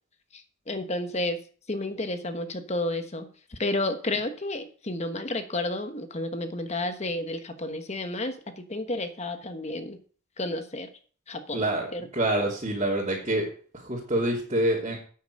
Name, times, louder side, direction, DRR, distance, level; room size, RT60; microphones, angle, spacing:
voice 1, 0.7-1.4 1.7-10.0 10.4-10.9 11.3-11.7 11.9-12.1, left 2 dB, 30° left, 8 dB, 1.2 m, -31 dB
voice 2, 11.5-11.9 12.1-13.5 13.7-15.0, right 1 dB, 30° right, -5 dB, 3.0 m, -26 dB
10.0 x 8.7 x 6.6 m, 0.43 s
head